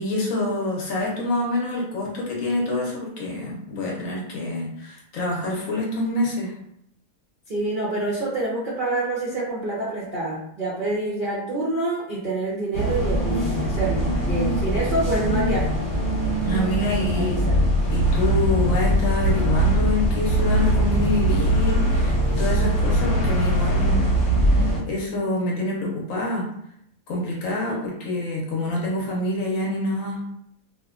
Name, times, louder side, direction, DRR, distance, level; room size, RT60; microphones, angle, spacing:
voice 1, 0.0-6.5 16.4-24.1 24.5-26.5 27.1-30.2, left 2 dB, 65° left, -2 dB, 0.9 m, -26 dB
voice 2, 7.5-15.8 17.1-17.6 27.6-27.9, right 2 dB, 65° right, -7 dB, 0.5 m, -27 dB
sound 1, 12.7-24.8, right 1 dB, 35° left, 0.5 m, -21 dB
2.9 x 2.1 x 2.3 m, 0.72 s
omnidirectional pair, 1.7 m